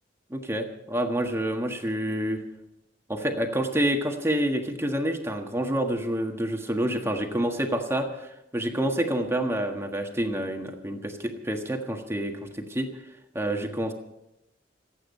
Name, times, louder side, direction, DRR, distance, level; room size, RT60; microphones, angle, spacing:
voice 1, 0.3-2.4 3.1-12.9 13.3-13.9, right 1 dB, 15° right, 3 dB, 1.5 m, -28 dB
26.5 x 9.0 x 5.5 m, 0.87 s
head